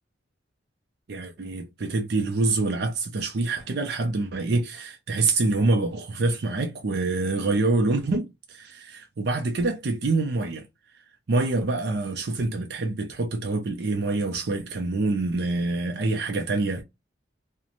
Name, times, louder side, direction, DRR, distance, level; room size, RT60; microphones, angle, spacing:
voice 1, 1.1-10.7 11.3-16.8, right 3 dB, 60° right, 0.5 m, -26 dB
2.9 x 2.1 x 2.5 m
head